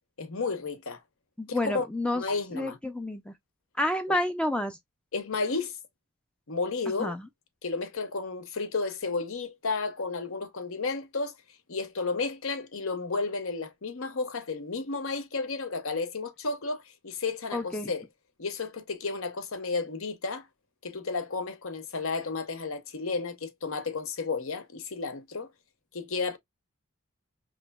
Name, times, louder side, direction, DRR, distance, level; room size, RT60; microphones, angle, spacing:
voice 1, 0.2-1.0 1.5-1.8 2.1-2.8 4.1-4.2 5.1-5.8 6.5-7.1 7.6-11.3 11.7-18.1 18.4-20.5 20.8-25.5 25.9-26.4, left 4 dB, 70° left, 0.9 m, -32 dB
voice 2, 1.4-2.2 2.5-3.3 3.8-4.8 6.9-7.2 17.5-17.9, left 1 dB, 5° left, 0.4 m, -29 dB
5.1 x 3.0 x 2.2 m
head